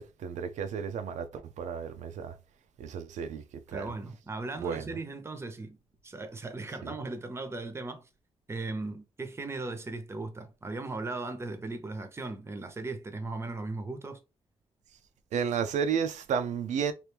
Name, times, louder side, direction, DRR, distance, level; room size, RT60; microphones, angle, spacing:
voice 1, 0.0-2.3 2.8-3.9 4.6-4.9 6.8-6.9 15.3-16.9, right 7 dB, 90° right, 0.5 m, -32 dB
voice 2, 3.7-5.8 6.0-8.1 8.5-14.2, right 3 dB, 20° right, 0.7 m, -37 dB
3.0 x 2.6 x 3.3 m
cardioid pair, 115°, 12 cm